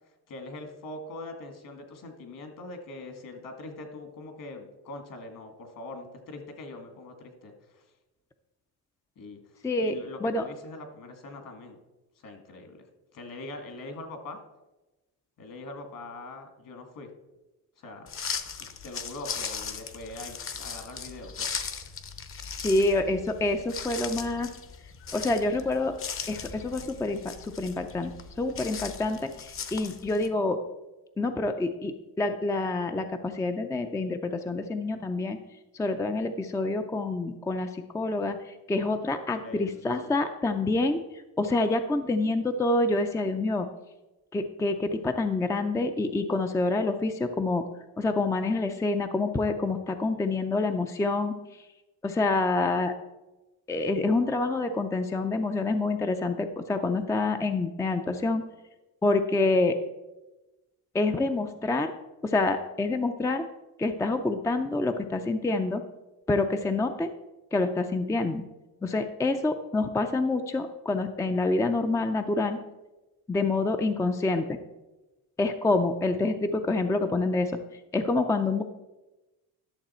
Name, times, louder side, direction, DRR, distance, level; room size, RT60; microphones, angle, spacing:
voice 1, 0.3-7.8 9.2-11.8 12.2-12.9 13.1-14.4 15.4-17.1 17.8-18.1 18.5-21.5 39.4-39.9, left 2 dB, 60° left, 5 dB, 2.0 m, -42 dB
voice 2, 9.6-10.5 22.6-24.5 25.1-26.0 26.3-28.1 28.4-30.6 31.2-35.4 35.7-41.0 41.4-43.7 44.3-47.6 48.0-51.3 52.0-52.9 53.7-58.5 59.0-59.8 60.9-61.9 62.2-63.4 63.8-65.8 66.3-67.1 67.5-68.5 68.8-72.6 73.3-74.6 75.4-77.6 77.9-78.6, left 2 dB, 10° left, 7 dB, 0.4 m, -27 dB
sound 1, 18.1-30.3, left 6 dB, 35° left, 0.8 m, -38 dB
11.5 x 6.7 x 4.3 m, 1.1 s
cardioid pair, 130°, 37 cm